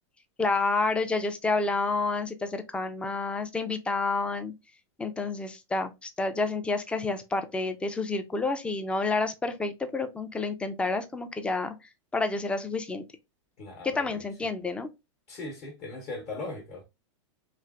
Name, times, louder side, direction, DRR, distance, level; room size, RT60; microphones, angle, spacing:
voice 1, 0.4-4.5 5.0-11.7 12.1-13.0 13.8-14.9, left 3 dB, 5° left, 0.4 m, -29 dB
voice 2, 13.6-14.3 15.3-16.8, left 2 dB, 40° left, 1.0 m, -39 dB
3.1 x 2.5 x 2.4 m
hypercardioid pair, 120°, 16 cm